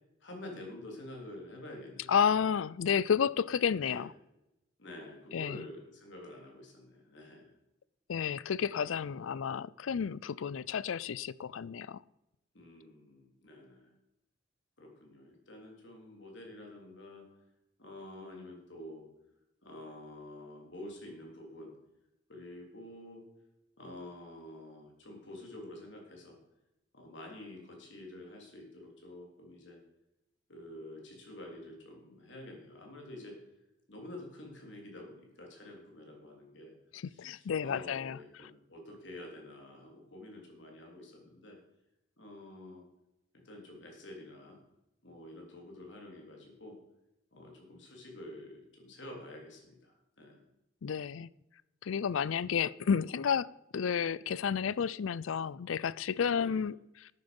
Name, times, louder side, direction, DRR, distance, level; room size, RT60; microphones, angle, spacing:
voice 1, 0.2-2.2 3.8-4.1 4.8-7.5 12.5-13.9 14.8-17.3 17.8-19.1 19.6-21.7 22.3-23.2 23.8-26.4 26.9-29.8 30.5-33.4 33.9-41.6 42.2-42.8 43.3-44.6 45.0-46.8 47.3-50.4 56.3-56.6, left 1 dB, 65° left, 3.6 m, -48 dB
voice 2, 2.1-4.1 5.3-5.6 8.1-12.0 36.9-38.2 50.8-51.3 51.8-57.1, left 7 dB, 80° left, 0.4 m, -31 dB
12.5 x 9.3 x 5.3 m
head